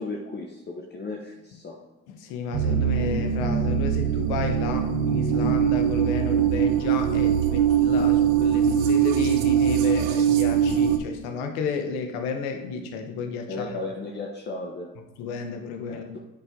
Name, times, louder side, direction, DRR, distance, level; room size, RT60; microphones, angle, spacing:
voice 1, 0.0-1.8 13.5-14.9 15.9-16.0, left 2 dB, 35° left, 0 dB, 1.0 m, -35 dB
voice 2, 2.1-13.8 15.2-16.0, left 5 dB, 85° left, 5 dB, 1.0 m, -32 dB
sound 1, 2.5-11.0, right 8 dB, 75° right, 0.9 m, -22 dB
8.2 x 4.4 x 3.6 m, 1.0 s
supercardioid pair, 75°, 31 cm